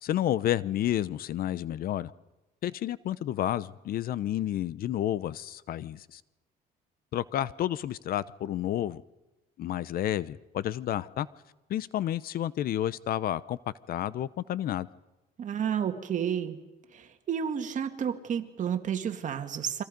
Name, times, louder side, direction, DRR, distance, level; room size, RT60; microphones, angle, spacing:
voice 1, 0.0-2.1 2.6-6.2 7.1-9.0 9.6-11.3 11.7-13.6 13.9-14.9, left 12 dB, 60° left, 18 dB, 0.8 m, -30 dB
voice 2, 15.4-16.6 16.9-19.8, right 8 dB, 50° right, 7 dB, 2.2 m, -31 dB
30.0 x 24.5 x 5.3 m, 1.0 s
cardioid pair, 110°, 17 cm